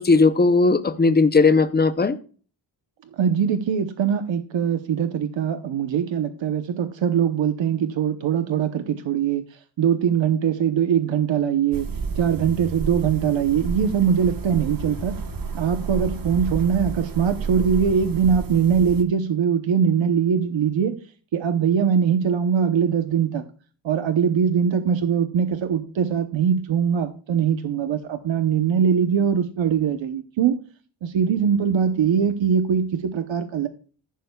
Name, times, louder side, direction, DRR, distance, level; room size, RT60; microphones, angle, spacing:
voice 1, 0.0-2.2, left 3 dB, 25° left, 0.6 m, -17 dB
voice 2, 3.1-11.9 12.1-15.2 15.5-21.0 21.3-23.4 23.8-30.6 31.0-33.7, right 7 dB, 85° right, 0.9 m, -22 dB
sound 1, 11.7-19.0, right 5 dB, 50° right, 1.2 m, -31 dB
14.0 x 11.5 x 2.3 m
wide cardioid pair, 180°, 44 cm